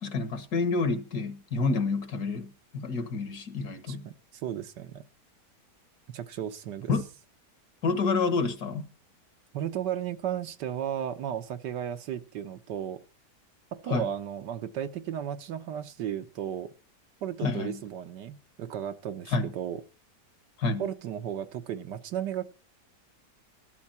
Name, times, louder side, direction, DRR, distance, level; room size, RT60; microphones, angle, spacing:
voice 1, 0.0-4.1 6.9-7.0 7.8-8.8 13.9-14.1 17.4-17.8 19.3-19.5 20.6-20.8, left 4 dB, 65° left, 2.0 m, -28 dB
voice 2, 3.9-5.0 6.1-6.9 9.5-13.0 13.7-16.7 17.2-19.8 20.8-22.5, right 10 dB, 80° right, 1.6 m, -34 dB
14.0 x 12.0 x 4.3 m
omnidirectional pair, 1.8 m